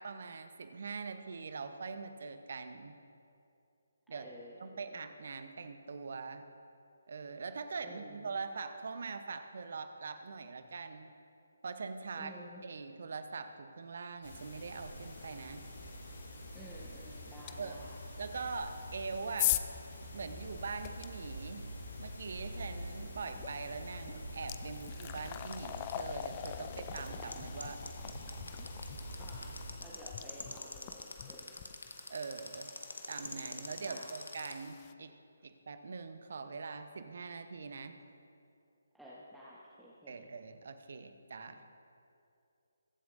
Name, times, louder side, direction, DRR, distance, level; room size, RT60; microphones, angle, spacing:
voice 1, 0.0-3.0 4.1-4.3 4.6-6.4 7.1-11.1 11.6-12.3 12.6-15.7 17.6-17.8 18.2-19.6 20.1-27.8 32.1-32.7 33.1-35.2 35.4-38.0 40.1-41.6, right 4 dB, 55° right, 9 dB, 0.8 m, -43 dB
voice 2, 4.1-5.0 7.8-8.3 12.1-12.6 16.5-17.9 29.2-31.7 33.8-34.1 38.9-40.3 41.5-41.6, equal, ahead, -9 dB, 1.2 m, -52 dB
sound 1, 14.2-29.7, equal, 55° left, 2.7 m, -46 dB
sound 2, 17.5-17.6 18.6-21.1 23.4-23.5 23.9-34.9, left 13 dB, 25° left, 0.4 m, -41 dB
sound 3, 25.4-34.5, left 2 dB, 80° left, 1.2 m, -44 dB
22.0 x 7.8 x 2.6 m, 2.6 s
figure-of-eight pair, 145°, 0 cm